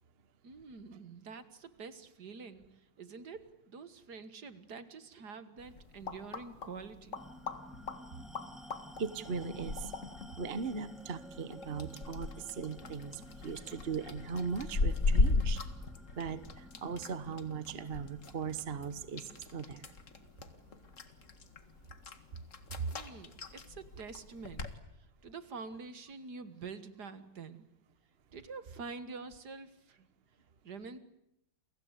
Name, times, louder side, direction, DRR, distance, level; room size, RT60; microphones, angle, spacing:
voice 1, 0.4-2.7 3.0-7.2 22.9-24.7 25.0-27.7 28.3-30.1 30.6-31.0, right 4 dB, 55° right, 13 dB, 2.1 m, -47 dB
sound 1, 5.6-24.7, left 3 dB, 40° left, 2.1 m, -38 dB
sound 2, 7.2-22.0, equal, ahead, 1.4 m, -54 dB
voice 2, 9.0-9.9 10.4-15.6 16.2-19.9 22.3-22.4 22.8-22.9, right 5 dB, 35° right, 14 dB, 1.2 m, -39 dB
29.5 x 24.0 x 8.3 m, 0.81 s
omnidirectional pair, 2.2 m